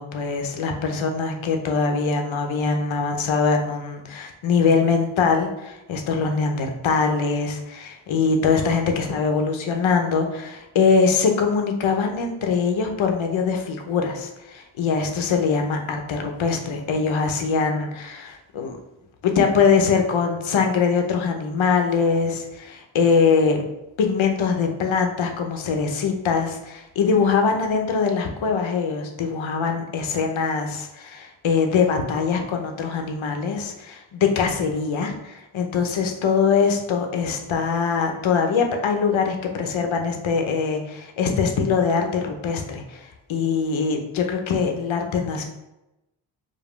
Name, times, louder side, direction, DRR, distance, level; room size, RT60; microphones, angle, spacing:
voice 1, 0.0-18.8 19.2-23.6 24.0-45.4, left 5 dB, 70° left, 4 dB, 0.8 m, -22 dB
5.1 x 2.2 x 3.2 m, 0.94 s
cardioid pair, 55°, 49 cm